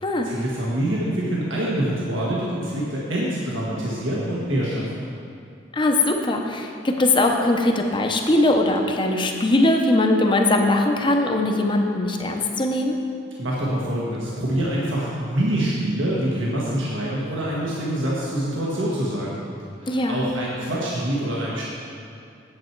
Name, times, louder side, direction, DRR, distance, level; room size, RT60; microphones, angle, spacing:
voice 1, 0.2-4.9 13.4-19.4 19.8-21.6, right 1 dB, 85° right, -5 dB, 1.5 m, -25 dB
voice 2, 5.7-12.9 19.9-20.2, left 2 dB, 25° left, 3 dB, 0.7 m, -20 dB
8.7 x 8.0 x 4.6 m, 2.5 s
head